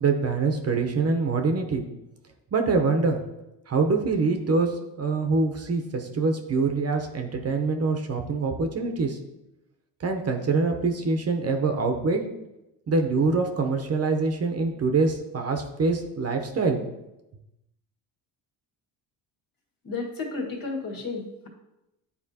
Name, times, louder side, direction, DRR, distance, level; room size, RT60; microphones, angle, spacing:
voice 1, 0.0-1.8 2.5-3.2 3.7-9.2 10.0-12.2 12.9-16.8, right 4 dB, 35° right, 4 dB, 0.9 m, -25 dB
voice 2, 19.8-21.5, left 3 dB, 55° left, 0 dB, 1.9 m, -32 dB
9.4 x 4.2 x 2.9 m, 0.92 s
cardioid pair, 85°, 41 cm